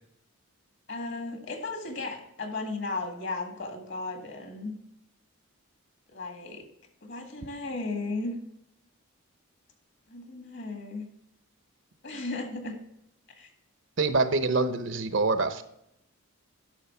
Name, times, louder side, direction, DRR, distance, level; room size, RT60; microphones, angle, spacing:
voice 1, 0.9-4.7 6.1-6.6 7.0-8.4 10.1-11.1 12.0-12.8 13.4-13.5, left 3 dB, 55° left, 4 dB, 2.0 m, -35 dB
voice 2, 14.0-15.6, right 3 dB, 60° right, 10 dB, 0.8 m, -25 dB
10.5 x 6.3 x 4.4 m, 0.78 s
head